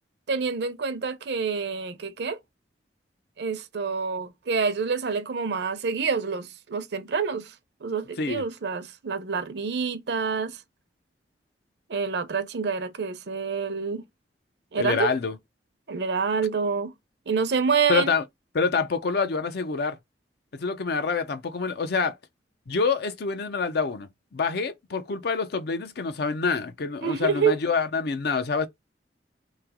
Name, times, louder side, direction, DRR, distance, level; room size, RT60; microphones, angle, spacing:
voice 1, 0.3-2.4 3.4-7.5 7.8-10.6 11.9-14.0 14.7-15.1 15.9-16.9 17.3-18.1 27.0-27.5, right 5 dB, 70° right, 0.6 m, -27 dB
voice 2, 14.8-15.3 17.9-18.2 18.5-20.0 20.5-22.1 22.7-28.7, left 4 dB, 65° left, 0.5 m, -26 dB
3.2 x 2.9 x 3.5 m
head